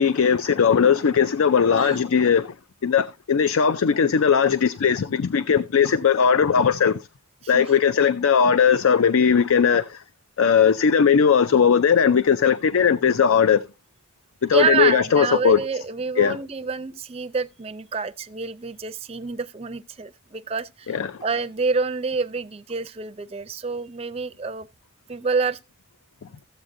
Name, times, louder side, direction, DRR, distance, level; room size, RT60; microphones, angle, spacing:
voice 1, 0.0-2.5 2.8-7.0 7.5-10.0 10.4-13.6 14.4-15.6 16.2-16.4 20.9-21.2, left 7 dB, 85° left, 0.5 m, -18 dB
voice 2, 1.6-2.0 7.4-7.6 14.5-24.7 25.1-25.6, right 5 dB, 30° right, 0.4 m, -27 dB
14.5 x 7.9 x 2.6 m
head